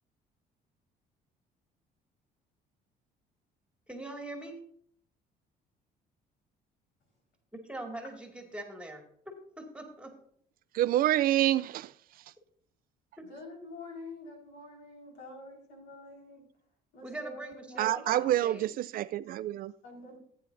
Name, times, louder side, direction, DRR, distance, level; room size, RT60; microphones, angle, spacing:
voice 1, 3.9-4.6 7.6-9.0 9.6-10.1 13.2-13.3 17.0-18.7, right 2 dB, 5° right, 2.1 m, -42 dB
voice 2, 10.7-11.9 17.8-19.7, right 13 dB, 60° right, 0.4 m, -27 dB
voice 3, 13.3-16.4 16.9-18.2 19.8-20.2, left 1 dB, 80° left, 4.5 m, -46 dB
15.5 x 9.1 x 2.6 m
cardioid pair, 110°, 17 cm